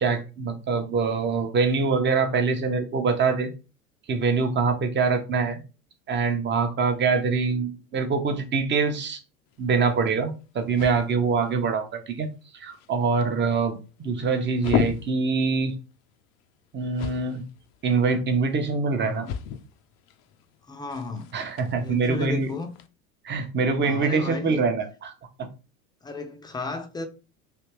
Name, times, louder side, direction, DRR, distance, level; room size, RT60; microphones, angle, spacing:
voice 1, 0.0-3.5 4.1-5.6 6.1-9.2 9.6-12.3 12.5-15.7 16.7-17.4 17.8-19.3 21.3-22.5 23.2-25.1, right 4 dB, 25° right, 0.8 m, -24 dB
sound 1, 9.5-22.9, left 9 dB, 50° left, 0.6 m, -37 dB
voice 2, 18.9-19.3 20.7-21.3 21.8-22.7 23.8-24.7 26.0-27.1, left 3 dB, 10° left, 0.6 m, -33 dB
3.4 x 2.8 x 3.0 m
hypercardioid pair, 90°, 44 cm